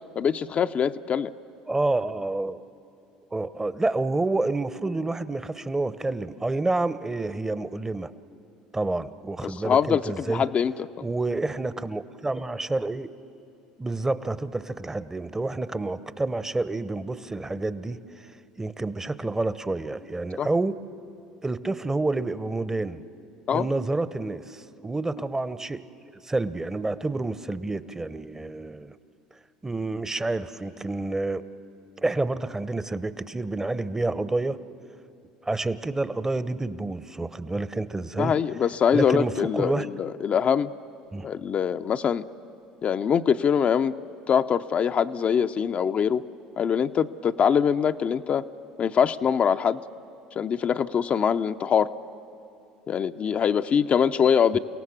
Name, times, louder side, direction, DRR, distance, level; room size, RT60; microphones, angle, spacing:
voice 1, 0.2-1.3 9.4-10.7 20.4-20.5 23.5-23.7 38.2-40.7 41.2-42.2 42.8-43.9 44.3-46.2 46.6-48.4 48.8-49.8 50.4-51.9 52.9-54.6, left 7 dB, 40° left, 9 dB, 0.6 m, -23 dB
voice 2, 1.7-2.6 3.3-8.1 8.7-10.4 11.0-13.1 13.8-18.3 18.6-20.8 21.4-23.0 23.5-25.8 26.2-28.9 29.6-31.4 32.0-34.6 35.4-38.3 38.9-39.9 41.1-41.3 54.5-54.6, right 2 dB, 15° right, 14 dB, 0.9 m, -28 dB
29.5 x 17.5 x 7.3 m, 2.7 s
hypercardioid pair, 65°, 3 cm